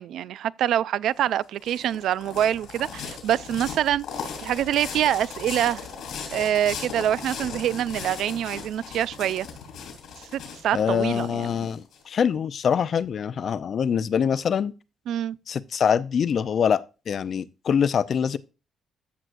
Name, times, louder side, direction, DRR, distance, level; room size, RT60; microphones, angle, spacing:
voice 1, 0.0-4.0 4.4-5.9 6.3-9.5 10.3-11.6 15.1-15.4, right 11 dB, 75° right, 0.3 m, -25 dB
sound 1, 1.2-12.0, left 6 dB, 80° left, 4.2 m, -38 dB
voice 2, 10.7-14.7 15.5-18.4, left 7 dB, 55° left, 0.5 m, -24 dB
14.0 x 6.2 x 2.6 m
cardioid pair, 90°, 0 cm